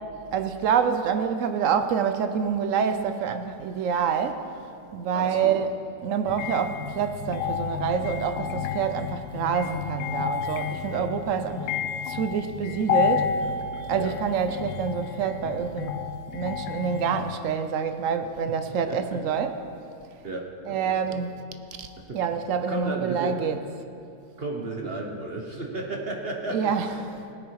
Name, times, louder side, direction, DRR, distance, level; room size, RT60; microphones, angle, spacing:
voice 1, 0.3-4.5 4.9-5.7 6.0-11.6 12.1-13.5 13.9-16.0 16.3-19.6 20.7-21.4 21.8-21.9 22.1-23.6 26.5-26.9, right 7 dB, 65° right, 0.8 m, -27 dB
voice 2, 5.1-5.6 10.9-11.0 11.5-11.8 14.0-14.1 18.9-19.2 20.2-21.2 22.0-22.2 22.7-23.4 24.4-27.1, right 2 dB, 40° right, 1.1 m, -34 dB
sound 1, 6.3-17.4, left 7 dB, 80° left, 1.3 m, -31 dB
17.5 x 10.0 x 4.7 m
omnidirectional pair, 2.0 m